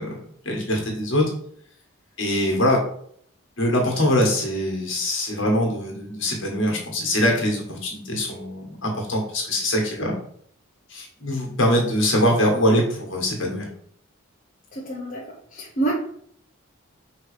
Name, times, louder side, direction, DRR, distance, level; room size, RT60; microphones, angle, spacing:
voice 1, 0.0-1.3 2.2-2.8 3.6-10.2 10.9-13.7, equal, 60° left, 0 dB, 2.0 m, -23 dB
voice 2, 14.7-15.9, right 2 dB, 40° left, -5 dB, 1.1 m, -28 dB
5.6 x 3.2 x 5.2 m, 0.64 s
head